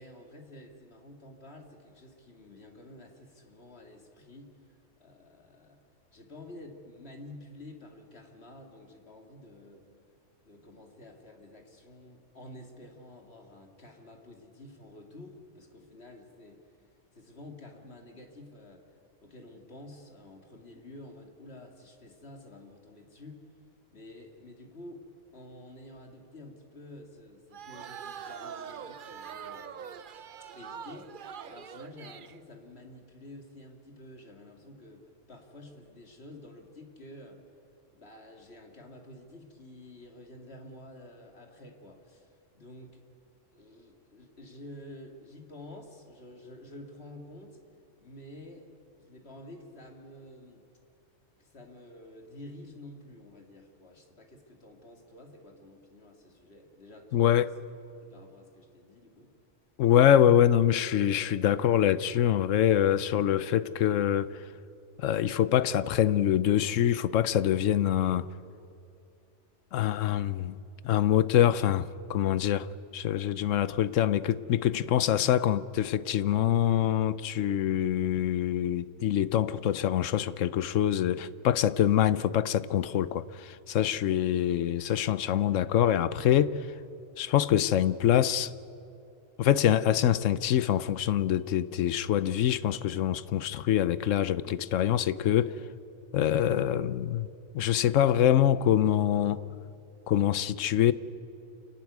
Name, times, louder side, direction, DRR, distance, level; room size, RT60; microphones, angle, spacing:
voice 1, 0.0-5.8 6.1-9.8 10.4-16.9 17.1-23.4 23.9-25.0 25.3-29.8 30.5-37.4 37.9-43.0 43.5-47.6 48.0-48.7 49.0-50.7 51.4-57.5 58.0-59.3 84.0-84.2, left 1 dB, 55° left, 2.6 m, -50 dB
sound 1, 27.5-32.4, right 8 dB, 50° right, 0.7 m, -43 dB
voice 2, 57.1-57.5 59.8-64.4 65.0-68.3 69.7-70.6 70.8-86.7 87.2-88.5 89.4-95.6 96.1-97.3 97.5-99.4 100.1-100.9, left 11 dB, 90° left, 1.0 m, -25 dB
28.5 x 12.0 x 9.4 m
omnidirectional pair, 1.3 m